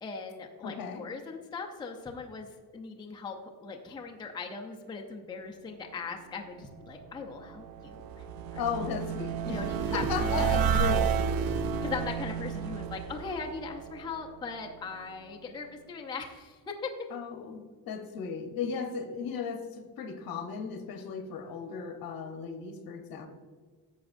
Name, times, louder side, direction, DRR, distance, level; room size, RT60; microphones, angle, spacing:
voice 1, 0.0-2.5 2.7-8.2 8.5-8.6 9.4-10.7 11.8-16.9, left 4 dB, 10° left, 2 dB, 0.5 m, -39 dB
voice 2, 0.6-1.1 8.5-9.6 9.9-11.1 17.1-23.3, left 6 dB, 65° left, 6 dB, 1.1 m, -36 dB
sound 1, 7.2-14.4, right 7 dB, 65° right, 0.6 m, -31 dB
11.0 x 7.2 x 2.5 m, 1.5 s
cardioid pair, 170°, 38 cm